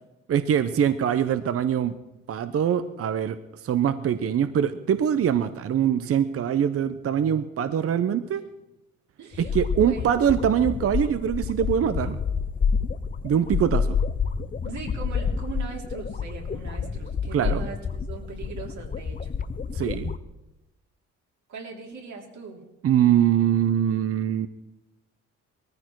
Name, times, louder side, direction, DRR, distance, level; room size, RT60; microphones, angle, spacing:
voice 1, 0.3-1.9 2.3-3.4 3.6-8.4 9.4-12.2 13.2-14.0 17.3-17.6 19.7-20.2 22.8-24.5, right 9 dB, 50° right, 12 dB, 0.7 m, -23 dB
voice 2, 9.2-9.5 9.8-10.1 14.6-19.3 21.5-22.6, right 5 dB, 70° right, 0 dB, 3.3 m, -40 dB
sound 1, 9.3-20.2, left 6 dB, 30° left, 0.7 m, -28 dB
19.0 x 14.5 x 4.7 m, 0.94 s
cardioid pair, 90°, 30 cm